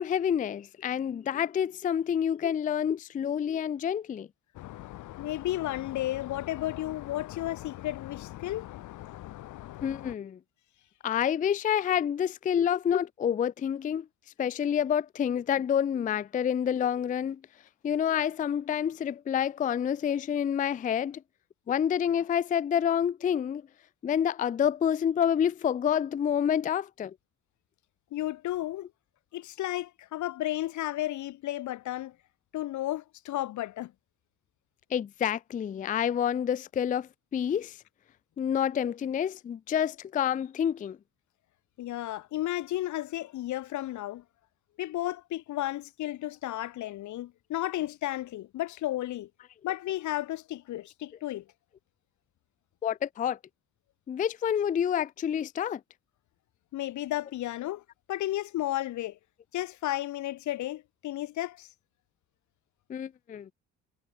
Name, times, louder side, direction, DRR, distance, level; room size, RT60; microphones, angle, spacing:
voice 1, 0.0-4.3 9.8-10.4 11.0-14.1 14.4-17.4 17.8-21.2 21.7-23.6 24.0-27.1 34.9-37.8 38.4-41.0 52.8-53.4 54.1-55.8 62.9-63.5, left 9 dB, 25° left, 0.3 m, -28 dB
sound 1, 4.5-10.1, left 15 dB, 90° left, 4.8 m, -43 dB
voice 2, 5.2-8.7 28.1-28.9 29.3-32.1 32.5-33.9 41.8-44.2 44.8-49.3 49.6-51.4 56.7-57.8 58.1-59.2 59.5-61.7, left 14 dB, 75° left, 0.9 m, -33 dB
cardioid pair, 90°, 30 cm